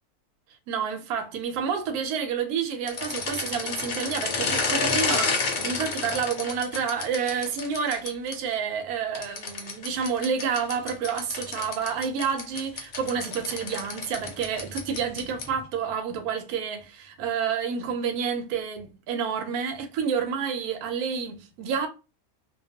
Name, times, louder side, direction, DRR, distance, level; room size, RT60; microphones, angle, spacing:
voice 1, 0.7-21.9, right 6 dB, 85° right, 1.1 m, -29 dB
sound 1, 2.8-8.3 9.1-15.6, left 4 dB, 80° left, 0.4 m, -31 dB
2.5 x 2.2 x 2.7 m
omnidirectional pair, 1.5 m